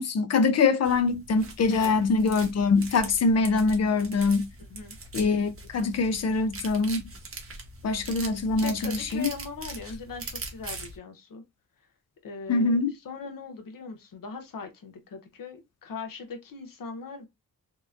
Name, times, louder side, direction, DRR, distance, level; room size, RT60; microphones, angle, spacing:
voice 1, 0.0-4.5 5.1-7.0 7.8-9.3 12.5-12.9, left 4 dB, 50° left, 0.4 m, -24 dB
sound 1, 0.8-11.0, right 2 dB, 40° right, 0.7 m, -41 dB
voice 2, 1.7-2.1 4.7-5.0 8.6-11.4 12.2-17.3, left 4 dB, 70° left, 0.8 m, -40 dB
2.8 x 2.0 x 2.4 m
wide cardioid pair, 90°, 35 cm